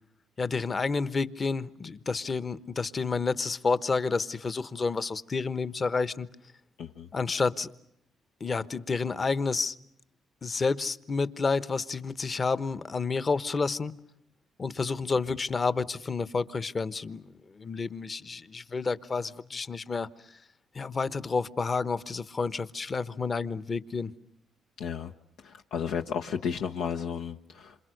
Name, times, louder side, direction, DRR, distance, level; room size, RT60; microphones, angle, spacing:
voice 1, 0.4-6.3 7.1-7.7 8.4-9.7 10.4-14.0 14.6-20.4 20.7-24.1, left 4 dB, 35° left, 1.1 m, -30 dB
voice 2, 6.8-7.1 24.8-25.1 25.4-27.8, left 7 dB, 85° left, 1.1 m, -33 dB
28.0 x 27.0 x 6.5 m
cardioid pair, 90°, 0 cm